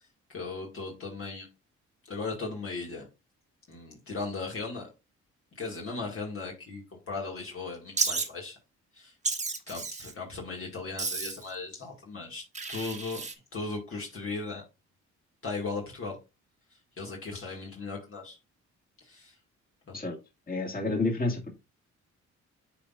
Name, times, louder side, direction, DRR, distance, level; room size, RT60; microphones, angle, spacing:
voice 1, 0.3-1.5 2.1-3.1 3.7-4.9 5.6-8.6 8.9-9.2 9.7-13.2 13.5-14.6 15.4-16.2 17.0-18.4 19.0-19.3 19.9-20.0, left 3 dB, 45° left, -1 dB, 2.0 m, -37 dB
Wild animals, 8.0-8.3 9.2-10.1 11.0-11.5 12.5-13.3, right 4 dB, 25° right, 1.2 m, -32 dB
voice 2, 20.5-21.5, left 2 dB, 30° left, 0 dB, 2.3 m, -29 dB
9.9 x 4.2 x 2.5 m, 0.26 s
cardioid pair, 90°, 30 cm